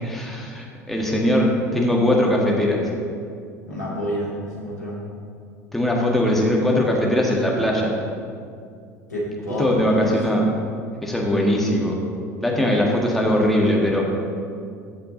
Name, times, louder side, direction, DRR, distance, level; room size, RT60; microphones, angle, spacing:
voice 1, 0.0-2.8 5.7-7.9 9.6-10.5 11.0-11.9 12.4-14.1, left 1 dB, ahead, -2 dB, 1.7 m, -20 dB
voice 2, 3.6-5.0 9.1-10.5, equal, 85° left, -6 dB, 2.6 m, -28 dB
15.0 x 5.6 x 3.9 m, 2.3 s
figure-of-eight pair, 70°, 9 cm